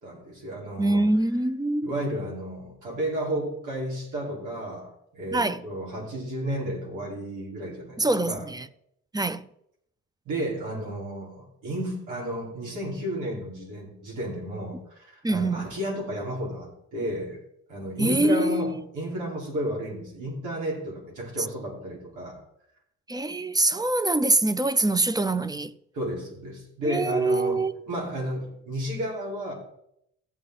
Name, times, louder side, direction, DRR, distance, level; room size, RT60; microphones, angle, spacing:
voice 1, 0.0-1.1 1.8-8.4 10.2-17.4 17.7-22.4 25.9-27.6 27.9-29.5, right 1 dB, 80° right, 4.8 m, -32 dB
voice 2, 0.8-1.9 5.3-5.6 8.0-8.7 9.1-9.5 15.2-15.8 18.0-18.7 23.1-25.7 26.8-27.7, right 2 dB, 15° right, 0.5 m, -24 dB
15.0 x 7.8 x 4.1 m
cardioid pair, 90°, 30 cm